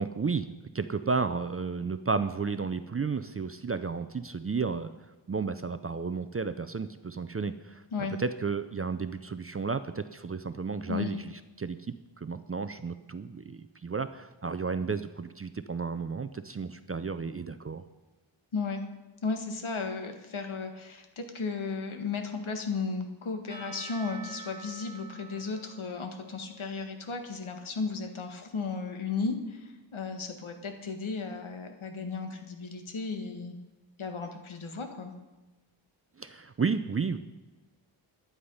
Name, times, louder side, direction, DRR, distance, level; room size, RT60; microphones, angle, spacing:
voice 1, 0.0-4.9 5.3-11.2 11.6-17.8 36.2-37.2, right 5 dB, 30° right, 11 dB, 0.4 m, -32 dB
voice 2, 18.5-18.9 19.2-33.6 34.0-35.1, left 4 dB, 70° left, 6 dB, 1.7 m, -35 dB
Percussion / Church bell, 23.5-27.5, right 3 dB, 20° left, 2.4 m, -48 dB
12.0 x 9.7 x 5.5 m, 1.2 s
wide cardioid pair, 135°, 50 cm